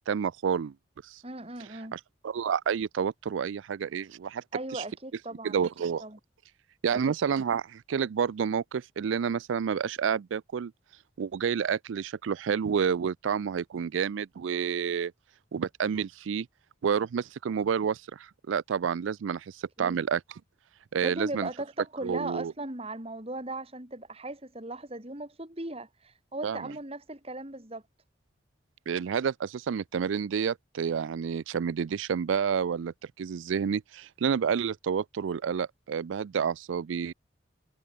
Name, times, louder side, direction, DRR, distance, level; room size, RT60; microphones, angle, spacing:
voice 1, 0.1-0.7 1.1-1.2 1.9-4.4 4.7-4.8 5.4-6.0 6.8-10.7 11.2-15.1 15.5-16.5 16.8-20.2 20.9-21.5 22.0-22.5 26.4-26.7 28.9-37.1, right 7 dB, 80° right, 0.4 m, -29 dB
voice 2, 1.2-2.0 4.5-5.7 6.0-6.2 19.8-20.0 21.0-27.8, right 2 dB, 30° right, 3.3 m, -38 dB
head